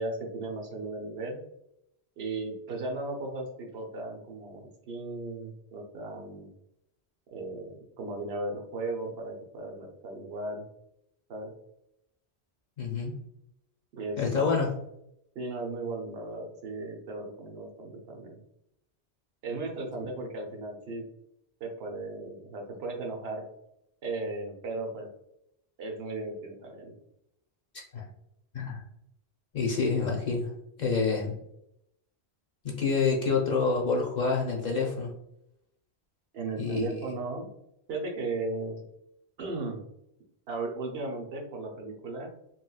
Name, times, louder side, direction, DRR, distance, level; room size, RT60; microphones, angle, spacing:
voice 1, 0.0-1.4 2.2-6.5 7.3-10.7 11.3-11.5 13.9-14.2 14.5-14.6 15.3-18.4 19.4-21.0 21.6-23.5 24.0-25.1 25.8-27.0 36.3-37.5 37.9-38.9 39.4-39.8 40.5-42.3, right 2 dB, 70° right, 1 dB, 0.9 m, -36 dB
voice 2, 12.8-13.2 14.2-14.7 27.9-28.0 28.5-28.8 29.5-30.5 30.8-31.4 32.6-35.1 36.6-37.1, left 4 dB, 50° left, -2 dB, 0.7 m, -27 dB
3.0 x 3.0 x 2.3 m, 0.80 s
omnidirectional pair, 1.1 m